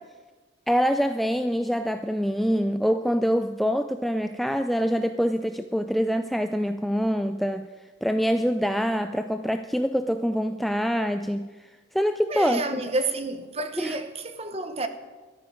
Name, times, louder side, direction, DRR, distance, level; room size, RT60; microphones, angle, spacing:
voice 1, 0.7-7.7 8.0-11.5 11.9-12.6 13.8-14.0, equal, ahead, 0.3 m, -25 dB
voice 2, 12.3-14.9, right 2 dB, 30° right, 1.0 m, -30 dB
15.5 x 13.0 x 5.1 m
head